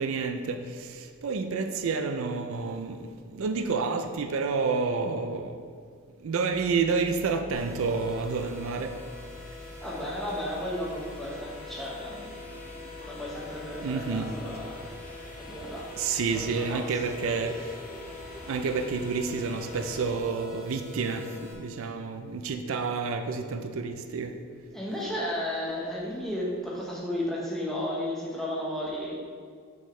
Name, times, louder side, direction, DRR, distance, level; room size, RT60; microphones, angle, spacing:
voice 1, 0.0-3.0 3.3-5.5 6.2-8.9 13.8-14.3 16.0-17.5 18.5-21.3 21.5-24.3, right 4 dB, 70° right, 7 dB, 0.4 m, -29 dB
sound 1, 6.5-20.1, equal, 40° left, 0.8 m, -46 dB
sound 2, 7.5-21.5, left 3 dB, 15° right, 1.3 m, -45 dB
voice 2, 9.8-12.3 13.0-14.9 15.4-15.9 16.2-16.9 24.7-29.2, left 1 dB, ahead, -5 dB, 1.1 m, -34 dB
6.4 x 6.3 x 3.2 m, 2.1 s
head